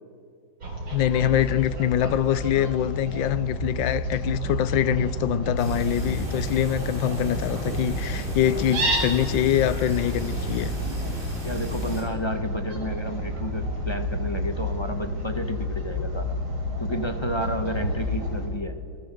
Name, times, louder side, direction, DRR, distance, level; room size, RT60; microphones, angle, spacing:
Fowl, 0.6-18.5, equal, 80° right, 5.4 m, -30 dB
voice 1, 0.9-10.7, left 11 dB, 70° left, 1.4 m, -24 dB
sound 1, 5.6-12.0, equal, 25° right, 6.8 m, -34 dB
voice 2, 11.4-16.4 16.8-18.8, equal, 15° left, 1.1 m, -31 dB
26.5 x 19.5 x 7.8 m
omnidirectional pair, 2.3 m